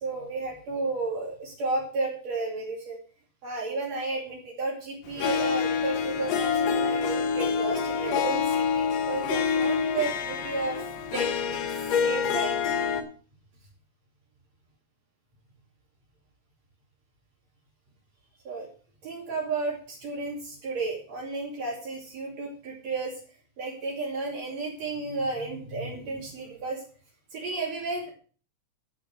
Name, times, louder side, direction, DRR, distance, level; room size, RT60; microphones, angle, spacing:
voice 1, 0.0-3.0 3.4-10.8 11.1-11.6 12.0-12.6 18.5-18.7 19.0-23.1 23.6-26.8 27.3-28.1, right 3 dB, 60° right, -4 dB, 3.8 m, -32 dB
Harp, 5.2-13.0, left 6 dB, 65° left, 2.3 m, -27 dB
11.5 x 6.5 x 6.1 m, 0.41 s
omnidirectional pair, 3.4 m